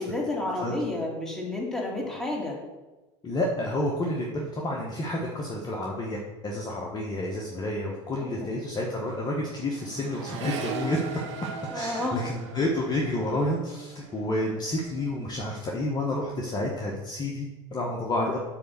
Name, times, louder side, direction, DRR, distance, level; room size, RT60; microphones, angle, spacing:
voice 1, 0.0-2.6 8.2-8.5 11.7-12.2, left 2 dB, 5° left, -3 dB, 2.6 m, -31 dB
voice 2, 3.2-11.0 11.7-18.4, left 1 dB, 30° left, -2 dB, 1.2 m, -30 dB
Accelerating revving vroom, 7.5-7.6 7.9-15.4 15.7-16.3, right 5 dB, 85° right, 1.3 m, -41 dB
8.4 x 3.5 x 6.7 m, 1.1 s
hypercardioid pair, 90°, 15 cm